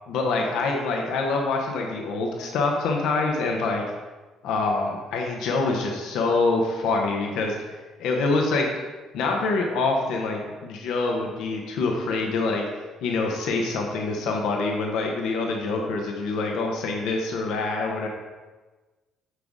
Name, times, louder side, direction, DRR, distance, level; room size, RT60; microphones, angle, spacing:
voice 1, 0.1-3.8 4.4-7.5 8.0-8.7 9.1-12.6 13.0-18.1, left 3 dB, 75° left, 0 dB, 1.0 m, -25 dB
7.8 x 4.9 x 3.6 m, 1.2 s
supercardioid pair, 60°, 0 cm